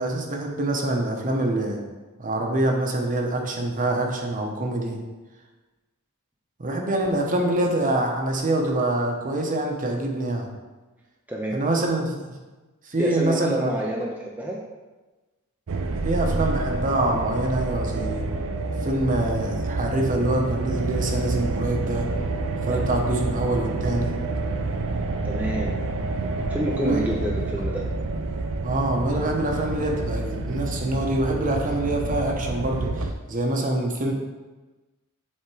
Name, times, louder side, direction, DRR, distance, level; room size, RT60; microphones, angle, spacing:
voice 1, 0.0-1.8 2.2-5.0 6.6-10.5 11.5-12.4 12.8-13.7 16.0-18.3 18.8-22.1 22.6-24.2 26.8-27.1 28.6-34.1, right 1 dB, 35° right, 2 dB, 0.9 m, -25 dB
voice 2, 11.3-11.6 13.0-14.6 22.7-22.8 25.2-25.8 26.5-27.8, equal, 5° right, -2 dB, 0.5 m, -28 dB
sound 1, 15.7-33.1, right 2 dB, 65° right, 0.5 m, -28 dB
7.5 x 3.6 x 4.8 m, 1.2 s
head